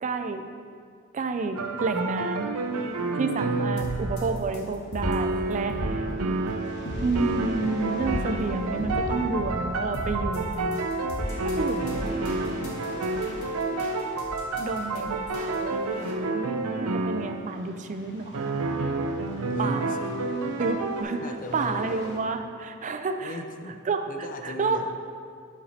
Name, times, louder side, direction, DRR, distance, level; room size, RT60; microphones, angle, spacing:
voice 1, 0.0-0.5 1.1-2.6 3.1-6.1 7.0-10.8 11.4-12.2 14.6-18.4 19.6-20.0 20.6-21.2 21.5-23.4 23.9-24.0 24.4-24.8, right 4 dB, 35° right, 7 dB, 0.4 m, -30 dB
sound 1, 1.6-4.4 5.0-17.4 18.3-21.0, right 3 dB, 80° right, 0.6 m, -29 dB
sound 2, 2.6-22.2, left 1 dB, 55° left, 1.1 m, -49 dB
sound 3, 3.8-16.1, equal, 75° left, 1.3 m, -35 dB
voice 2, 19.5-20.0 21.2-21.9 23.2-23.8 24.1-24.9, left 1 dB, 40° left, 5 dB, 0.5 m, -38 dB
7.8 x 6.0 x 4.1 m, 2.2 s
head